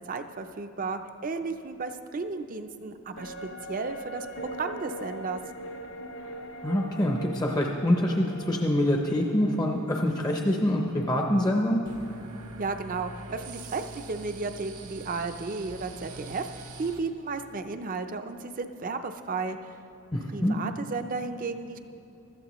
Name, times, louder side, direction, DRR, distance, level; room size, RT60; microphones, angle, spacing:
voice 1, 0.1-4.3 4.6-5.4 12.6-16.5 16.8-19.6 20.3-21.8, right 4 dB, 40° right, 8 dB, 0.5 m, -33 dB
sound 1, 3.2-12.7 13.0-13.1, equal, 60° left, 0.7 m, -42 dB
voice 2, 6.6-11.8 20.1-20.6, left 1 dB, 15° left, 1 dB, 0.6 m, -25 dB
sound 2, 11.9-17.0, right 3 dB, 75° right, 0.9 m, -44 dB
15.5 x 13.0 x 3.0 m, 2.7 s
head